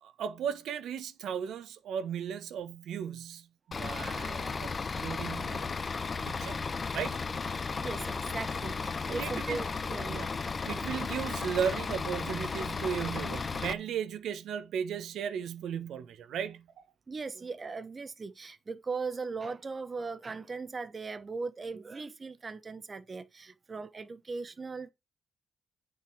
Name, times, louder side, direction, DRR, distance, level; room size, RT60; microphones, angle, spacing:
voice 1, 0.0-5.7 6.2-7.2 9.1-9.6 10.1-10.3 10.6-16.6, right 8 dB, 75° right, 1.1 m, -36 dB
Bus / Idling, 3.7-13.7, left 4 dB, 35° left, 0.8 m, -35 dB
voice 2, 7.8-10.3 17.1-24.9, right 4 dB, 30° right, 1.0 m, -38 dB
9.1 x 6.1 x 4.7 m
cardioid pair, 90°, 0 cm